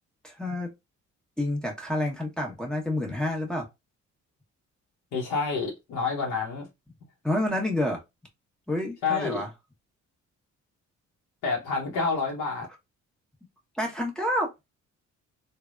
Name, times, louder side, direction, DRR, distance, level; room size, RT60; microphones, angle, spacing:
voice 1, 0.2-0.7 1.4-3.7 7.2-8.0 8.7-9.5 13.7-14.5, left 1 dB, ahead, 1.0 m, -28 dB
voice 2, 5.1-6.7 9.0-9.4 11.4-12.7, left 4 dB, 90° left, 0.9 m, -28 dB
3.3 x 2.2 x 2.4 m
cardioid pair, 90°, 30 cm